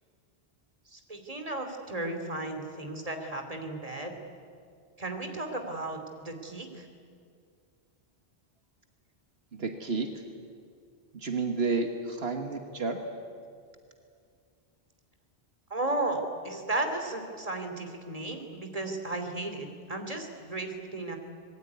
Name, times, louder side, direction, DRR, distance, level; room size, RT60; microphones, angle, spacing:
voice 1, 0.9-4.1 5.0-6.9 15.7-21.2, right 2 dB, 35° right, 5 dB, 2.9 m, -34 dB
voice 2, 9.5-10.2 11.1-13.0, right 4 dB, 75° right, 5 dB, 1.8 m, -31 dB
25.5 x 21.0 x 9.6 m, 2.2 s
omnidirectional pair, 1.1 m